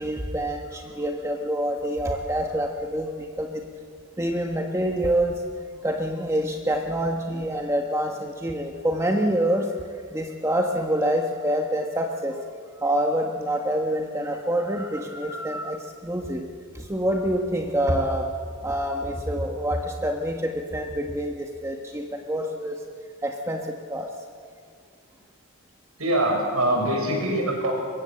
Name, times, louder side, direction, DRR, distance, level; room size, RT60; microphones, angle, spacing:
voice 1, 0.0-3.6 4.2-5.4 5.8-9.7 10.1-12.4 12.8-15.8 16.0-16.5 16.9-18.3 18.6-22.7 23.2-23.6 23.9-24.1, right 1 dB, 15° right, 3 dB, 1.2 m, -26 dB
voice 2, 26.0-27.7, right 1 dB, 90° right, 1 dB, 6.7 m, -23 dB
24.0 x 22.5 x 7.7 m, 2.2 s
head